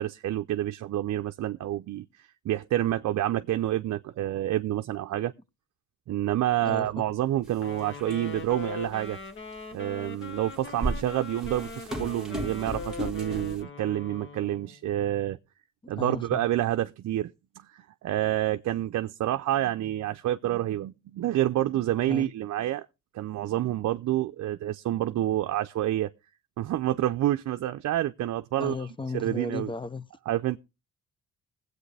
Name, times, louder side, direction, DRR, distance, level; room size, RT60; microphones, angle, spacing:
voice 1, 0.0-2.0 2.4-5.3 6.1-9.2 9.7-15.4 15.9-22.9 23.1-26.1 26.6-28.8 29.1-29.7 30.3-30.6, right 13 dB, 65° right, 0.6 m, -28 dB
Wind instrument woodwind instrument, 7.5-14.8, left 4 dB, 40° left, 1.5 m, -41 dB
sound 1, 7.5-7.6 8.0-8.5 9.2-9.3 10.3-13.6, right 1 dB, ahead, 1.8 m, -35 dB
voice 2, 15.8-16.4 22.1-22.3 28.6-30.0, left 3 dB, 15° left, 0.7 m, -35 dB
20.5 x 8.1 x 3.3 m
cardioid pair, 90°, 30 cm